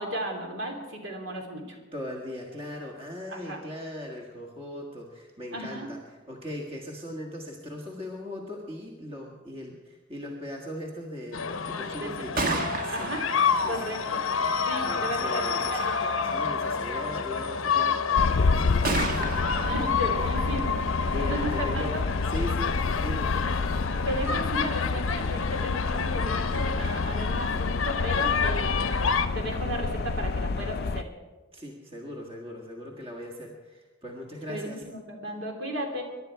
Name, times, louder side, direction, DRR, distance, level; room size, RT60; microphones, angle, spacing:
voice 1, 0.0-1.8 3.3-3.6 5.5-5.9 12.0-13.2 13.6-14.2 14.6-15.4 15.7-16.1 19.6-22.0 23.3-23.5 24.0-28.9 29.3-31.1 34.5-36.0, right 1 dB, 60° right, 2 dB, 3.1 m, -35 dB
voice 2, 1.9-12.4 12.8-13.1 13.6-13.8 14.8-15.9 16.2-19.6 21.1-22.0 22.3-23.3 31.5-34.8, left 1 dB, 25° right, 0 dB, 1.7 m, -39 dB
sound 1, 11.3-29.3, left 6 dB, 75° left, 0.8 m, -29 dB
Gunshot gunfire, 12.1-25.9, right 2 dB, 45° right, 1.3 m, -37 dB
sound 2, 18.2-31.0, left 4 dB, 50° left, 0.4 m, -29 dB
23.5 x 11.5 x 4.7 m, 1.2 s
head